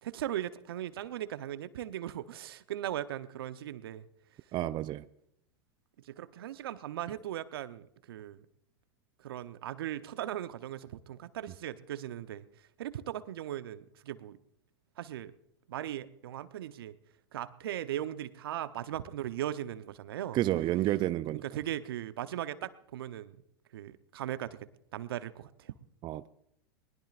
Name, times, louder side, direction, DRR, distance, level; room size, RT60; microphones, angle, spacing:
voice 1, 0.0-4.1 6.0-8.4 9.2-12.4 12.8-14.4 15.0-15.3 15.7-17.0 17.3-20.4 21.3-23.4 23.7-24.6 24.9-25.7, right 12 dB, 70° right, 0.9 m, -38 dB
voice 2, 4.5-5.1 20.3-21.4 26.0-26.3, right 15 dB, 35° right, 0.5 m, -30 dB
22.0 x 20.0 x 2.5 m
hypercardioid pair, 95°, 13 cm